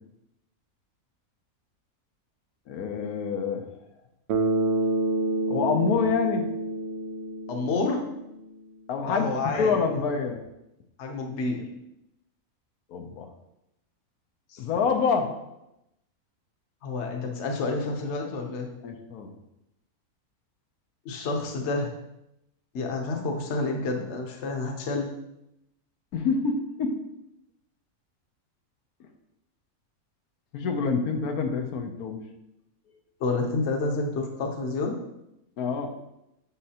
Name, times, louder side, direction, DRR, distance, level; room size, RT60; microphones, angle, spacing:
voice 1, 2.7-3.7 5.5-6.5 8.9-10.4 12.9-13.3 14.6-15.3 18.8-19.3 26.1-26.9 30.5-32.2 35.6-35.9, left 5 dB, 85° left, 4 dB, 1.2 m, -27 dB
Bass guitar, 4.3-8.3, right 2 dB, 60° right, 0.7 m, -28 dB
voice 2, 7.5-8.0 9.1-9.7 11.0-11.6 14.5-14.6 16.8-18.7 21.0-21.9 22.7-25.1 33.2-34.9, left 3 dB, 55° left, 3 dB, 1.1 m, -29 dB
6.3 x 5.7 x 2.8 m, 0.86 s
omnidirectional pair, 1.5 m